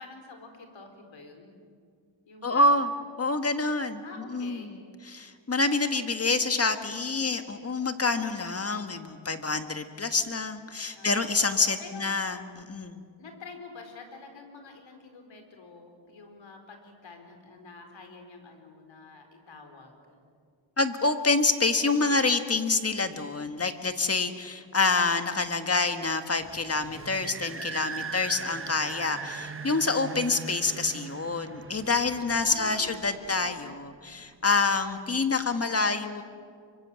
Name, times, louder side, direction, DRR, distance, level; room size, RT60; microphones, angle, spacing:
voice 1, 0.0-1.5 2.3-2.7 4.0-4.7 5.7-5.8 10.9-11.3 11.8-12.2 13.2-20.2 27.8-28.3 32.5-33.6, left 3 dB, 65° left, 5 dB, 4.6 m, -47 dB
voice 2, 2.4-2.9 3.2-4.8 5.0-13.0 20.8-36.2, left 3 dB, 30° left, 8 dB, 1.6 m, -27 dB
sound 1, 26.4-33.7, right 5 dB, 25° right, 1.2 m, -40 dB
25.0 x 24.0 x 7.7 m, 2.2 s
wide cardioid pair, 100°, 48 cm